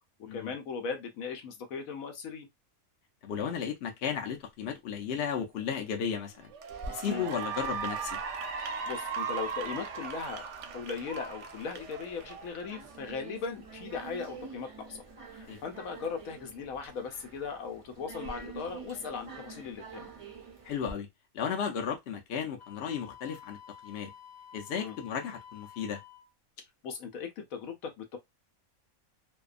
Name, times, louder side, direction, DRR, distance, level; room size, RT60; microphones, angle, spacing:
voice 1, 0.3-2.5 7.0-7.3 8.6-10.5 10.7-15.0 15.3-20.1 24.8-25.0 26.8-28.2, left 5 dB, 80° left, 1.1 m, -38 dB
voice 2, 3.2-6.5 6.9-8.2 15.5-15.6 20.6-21.1 21.3-24.1 24.5-26.0, left 7 dB, 60° left, 0.8 m, -34 dB
Cheering / Applause, 5.8-6.1 6.5-13.0, right 6 dB, 65° right, 0.8 m, -38 dB
sound 1, 6.7-20.9, right 4 dB, 50° right, 0.4 m, -48 dB
Wind instrument woodwind instrument, 22.6-26.3, left 9 dB, 10° left, 0.6 m, -51 dB
2.6 x 2.2 x 2.4 m
omnidirectional pair, 1.5 m